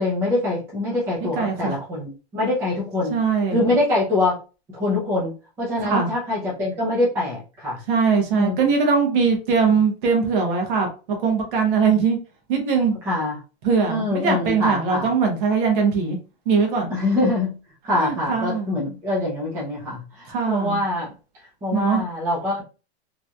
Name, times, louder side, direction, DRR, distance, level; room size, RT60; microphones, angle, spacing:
voice 1, 0.0-3.2 3.5-4.3 4.7-5.3 5.6-7.8 8.3-8.6 13.1-13.3 13.9-15.1 16.9-17.6 17.8-21.1 21.6-22.6, left 2 dB, 10° right, -6 dB, 0.5 m, -24 dB
voice 2, 1.2-1.8 3.1-3.7 5.8-6.1 7.9-12.2 12.5-12.9 13.6-16.2 16.5-16.9 17.9-18.7 20.3-20.8 21.7-22.0, right 5 dB, 50° right, 2 dB, 1.0 m, -21 dB
3.0 x 2.7 x 2.3 m, 0.34 s
supercardioid pair, 170°, 33 cm